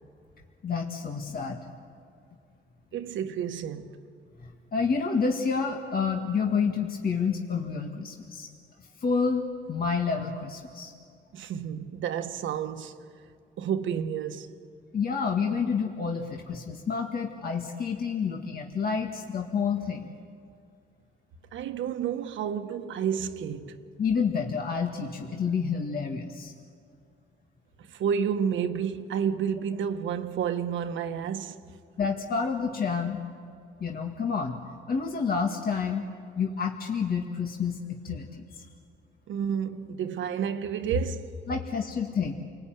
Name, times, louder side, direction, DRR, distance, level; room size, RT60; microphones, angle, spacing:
voice 1, 0.6-1.6 4.4-8.5 8.8-9.4 9.7-10.9 14.9-20.1 24.0-26.5 32.0-33.2 33.8-34.6 34.9-36.0 36.4-38.7 41.5-42.3, left 5 dB, 50° left, 2.0 m, -29 dB
voice 2, 2.9-3.9 11.3-13.0 13.6-14.6 21.5-23.8 27.9-31.6 39.3-41.3, right 7 dB, 75° right, 1.4 m, -30 dB
29.5 x 20.0 x 9.4 m
cardioid pair, 90°, 20 cm